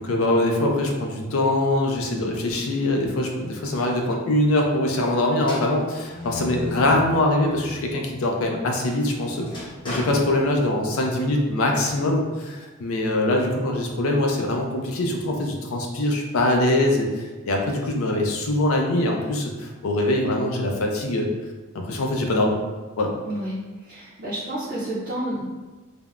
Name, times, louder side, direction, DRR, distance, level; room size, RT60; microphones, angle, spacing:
voice 1, 0.0-21.3 21.7-22.6 23.0-23.1, left 1 dB, 70° left, 1 dB, 0.4 m, -23 dB
sound 1, 5.4-7.8 8.3-11.1, left 1 dB, 20° left, 0.7 m, -37 dB
voice 2, 23.2-25.5, right 1 dB, 40° right, -8 dB, 0.5 m, -30 dB
3.3 x 2.0 x 2.3 m, 1.3 s
head